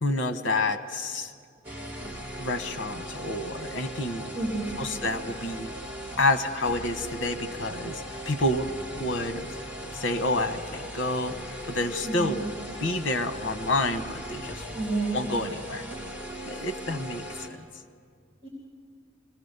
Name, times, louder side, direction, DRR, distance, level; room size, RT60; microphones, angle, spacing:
voice 1, 0.0-1.3 2.4-4.3 4.8-5.7 6.2-8.7 9.0-9.6 9.9-11.4 11.7-12.4 12.8-14.7 15.1-15.8 16.5-17.6, left 2 dB, 70° left, 9 dB, 1.1 m, -29 dB
sound 1, 1.6-17.5, equal, 10° right, 2.3 m, -39 dB
voice 2, 4.3-4.9 12.0-12.4 14.7-15.2 18.4-18.5, right 3 dB, 40° right, -2 dB, 3.2 m, -30 dB
24.5 x 18.0 x 6.8 m, 2.1 s
head